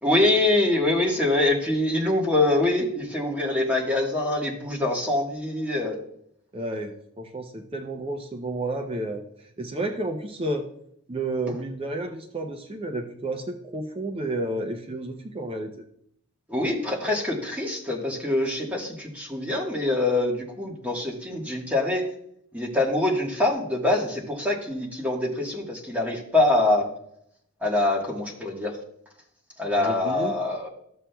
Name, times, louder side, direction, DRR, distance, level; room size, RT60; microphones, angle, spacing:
voice 1, 0.0-6.0 16.5-22.1 22.5-26.9 27.6-28.7 29.6-30.7, left 2 dB, 5° right, -2 dB, 1.3 m, -24 dB
voice 2, 6.5-10.7 11.1-15.7 29.8-30.3, right 2 dB, 25° right, 4 dB, 0.5 m, -31 dB
12.5 x 7.2 x 2.3 m, 0.70 s
head